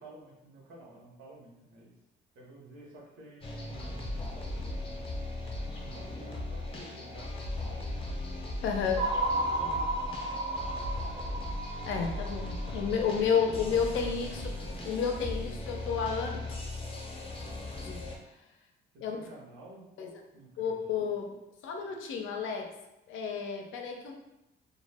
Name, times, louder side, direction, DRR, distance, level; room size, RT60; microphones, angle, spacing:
voice 1, 0.0-1.9 2.3-4.0 4.4-5.0 5.5-5.7 5.9-7.9 9.5-10.9 12.7-13.7 18.9-19.8 20.3-21.0, right 1 dB, 85° right, -3 dB, 0.9 m, -52 dB
sound 1, 3.4-18.2, left 1 dB, 30° left, 0.6 m, -38 dB
voice 2, 8.6-9.0 11.8-14.5 14.8-16.4 17.8-18.0 19.0-19.2 20.0-20.2 20.6-21.4 21.6-22.7 23.1-24.1, left 6 dB, 80° left, 3 dB, 0.5 m, -31 dB
sound 2, 9.0-13.2, right 2 dB, 25° right, 0.4 m, -33 dB
2.2 x 2.1 x 3.3 m, 0.92 s
cardioid pair, 90°, 20 cm